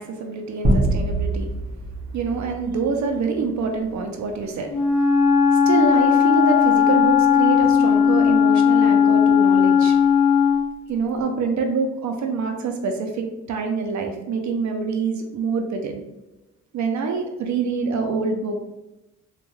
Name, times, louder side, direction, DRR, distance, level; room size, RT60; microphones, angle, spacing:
voice 1, 0.0-1.5 2.1-5.0 5.5-10.0 10.9-16.0 16.7-18.7, right 4 dB, 70° right, 4 dB, 0.5 m, -26 dB
sound 1, 0.6-3.5, right 1 dB, 35° right, 0.8 m, -24 dB
Wind instrument woodwind instrument, 4.7-10.7, left 7 dB, 70° left, 0.5 m, -17 dB
3.0 x 2.3 x 2.2 m, 0.99 s
cardioid pair, 70°, 29 cm